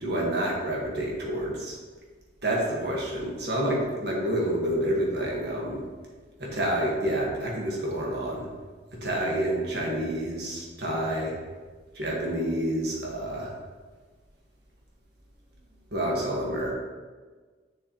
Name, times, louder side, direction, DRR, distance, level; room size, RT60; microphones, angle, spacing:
voice 1, 0.0-1.8 2.4-5.8 6.4-8.5 9.0-11.4 11.9-13.5 15.9-16.7, right 1 dB, 60° right, -3 dB, 1.7 m, -28 dB
6.9 x 6.9 x 3.1 m, 1.4 s
head